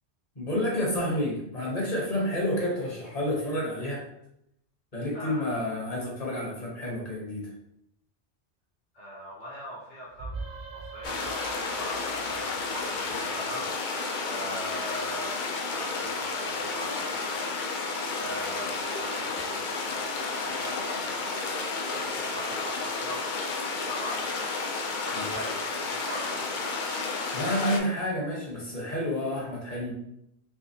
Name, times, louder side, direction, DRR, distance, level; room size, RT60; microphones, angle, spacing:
voice 1, 0.4-4.0 4.9-7.5 25.1-25.5 27.3-29.9, left 1 dB, 35° left, -3 dB, 1.1 m, -30 dB
voice 2, 5.1-5.7 8.9-17.4 18.2-21.2 21.9-23.4 23.7-24.7 25.0-26.4, equal, 85° left, -7 dB, 1.5 m, -41 dB
sound 1, 10.1-13.8, right 3 dB, 70° right, 0.8 m, -42 dB
sound 2, 11.0-27.8, left 3 dB, 55° left, 0.6 m, -32 dB
3.4 x 3.2 x 2.7 m, 0.80 s
omnidirectional pair, 1.2 m